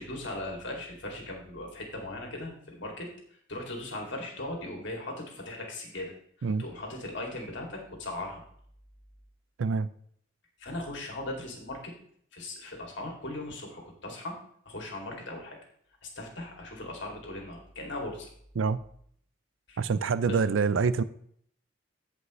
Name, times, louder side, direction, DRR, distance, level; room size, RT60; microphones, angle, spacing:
voice 1, 0.0-8.4 10.6-11.9 12.3-14.4 14.6-15.6 16.0-18.3 19.7-19.8 20.2-20.4, left 1 dB, 60° left, 0 dB, 2.4 m, -38 dB
voice 2, 9.6-9.9 18.6-18.8 19.8-21.0, right 5 dB, 65° right, 16 dB, 0.4 m, -26 dB
15.5 x 5.4 x 3.1 m, 0.64 s
head